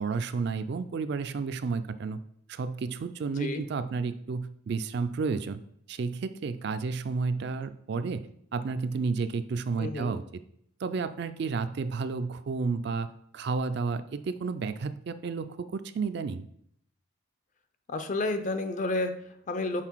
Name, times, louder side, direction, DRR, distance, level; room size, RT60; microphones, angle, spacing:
voice 1, 0.0-2.2 2.5-5.6 5.9-8.3 8.5-10.2 10.8-13.1 13.3-16.5, right 4 dB, 55° right, 11 dB, 0.3 m, -31 dB
voice 2, 3.3-3.6 9.8-10.1 17.9-19.8, left 2 dB, 35° left, 9 dB, 0.5 m, -31 dB
5.8 x 4.1 x 4.5 m, 0.69 s
head